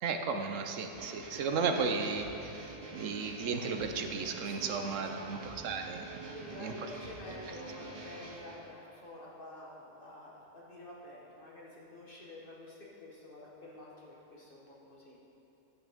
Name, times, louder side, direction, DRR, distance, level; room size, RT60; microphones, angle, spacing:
voice 1, 0.0-6.1 6.6-6.9, right 5 dB, 80° right, 5 dB, 1.1 m, -34 dB
sound 1, 0.9-8.7, right 2 dB, 30° right, 1.0 m, -46 dB
voice 2, 4.4-5.6 6.3-15.2, left 1 dB, 45° left, -5 dB, 1.4 m, -49 dB
11.5 x 8.7 x 3.5 m, 2.8 s
omnidirectional pair, 1.3 m